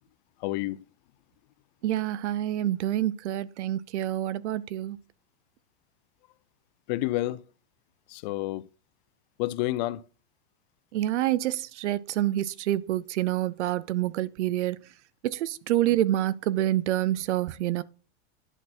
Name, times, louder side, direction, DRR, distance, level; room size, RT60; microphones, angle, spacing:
voice 1, 0.4-0.8 6.9-7.4 8.1-8.7 9.4-10.0, left 16 dB, 40° left, 0.5 m, -29 dB
voice 2, 1.8-5.0 10.9-14.8 15.2-17.8, right 13 dB, 85° right, 0.6 m, -27 dB
11.0 x 4.3 x 4.3 m
supercardioid pair, 145°, 34 cm